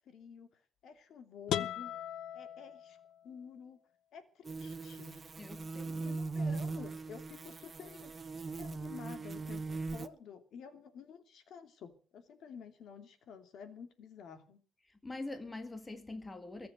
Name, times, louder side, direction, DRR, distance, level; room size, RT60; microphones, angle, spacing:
voice 1, 0.1-0.5 0.8-1.9 2.3-3.0 3.2-3.8 4.1-5.3 6.0-14.6, left 6 dB, 60° left, 2.6 m, -51 dB
sound 1, 1.5-3.4, left 11 dB, 80° left, 0.8 m, -38 dB
sound 2, 4.5-10.1, right 3 dB, 25° right, 0.9 m, -40 dB
voice 2, 5.4-6.2 14.9-16.7, left 2 dB, 15° left, 1.9 m, -44 dB
21.5 x 7.5 x 8.0 m
cardioid pair, 155°, 0 cm